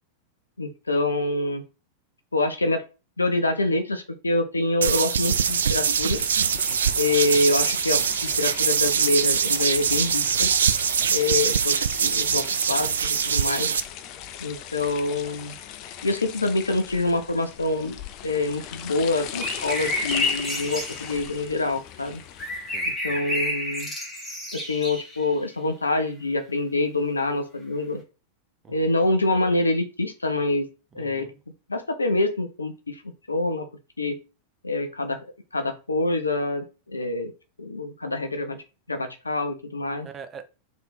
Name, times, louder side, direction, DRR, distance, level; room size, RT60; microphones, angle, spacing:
voice 1, 0.6-1.6 2.3-2.8 3.2-6.2 7.0-10.5 11.1-13.7 14.4-15.6 16.0-22.2 23.0-23.9 24.5-28.0 28.7-30.7 30.9-31.3 31.7-33.0 33.3-33.6 34.0-34.2 34.6-35.2 35.5-37.3 37.6-38.6 38.9-40.1, left 2 dB, 80° left, 0.7 m, -26 dB
sound 1, 4.8-13.8, right 7 dB, 65° right, 0.3 m, -23 dB
sound 2, 5.2-22.9, left 10 dB, 40° left, 0.5 m, -39 dB
voice 2, 6.7-7.0 22.7-23.3 28.6-28.8 30.9-31.4 40.0-40.5, right 6 dB, 25° right, 0.7 m, -44 dB
sound 3, 19.4-21.3 22.4-25.2 26.0-26.1, left 2 dB, 10° left, 1.7 m, -29 dB
3.4 x 2.8 x 4.2 m
figure-of-eight pair, 90°, 0 cm